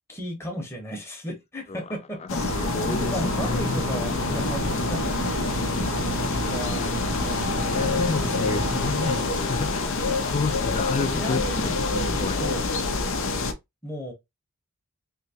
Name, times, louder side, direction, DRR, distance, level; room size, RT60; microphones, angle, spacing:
voice 1, 0.1-5.4 6.4-6.9 11.1-12.7 13.8-14.1, equal, 10° left, 1.0 m, -34 dB
sound 1, 2.3-13.5, left 3 dB, 60° left, 0.6 m, -26 dB
sound 2, 2.4-9.2, right 4 dB, 85° right, 0.5 m, -33 dB
voice 2, 2.5-3.8 6.7-7.3 7.6-11.4 12.0-12.4, left 4 dB, 30° left, 0.3 m, -31 dB
3.2 x 2.8 x 2.8 m
head